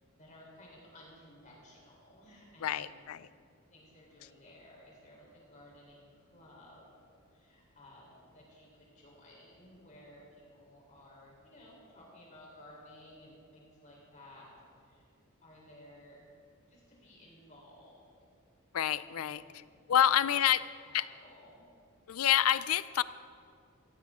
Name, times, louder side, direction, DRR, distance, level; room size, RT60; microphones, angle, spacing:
voice 1, 0.2-3.1 3.7-6.8 7.3-14.5 14.8-15.1 15.4-16.3 16.7-18.0 19.1-19.8 20.0-21.7, left 1 dB, 35° left, -3 dB, 3.8 m, -56 dB
voice 2, 2.6-3.3 18.7-19.4 19.9-20.6 20.9-21.1 22.1-23.0, left 10 dB, 80° left, 16 dB, 0.4 m, -27 dB
16.0 x 15.0 x 3.7 m, 2.4 s
head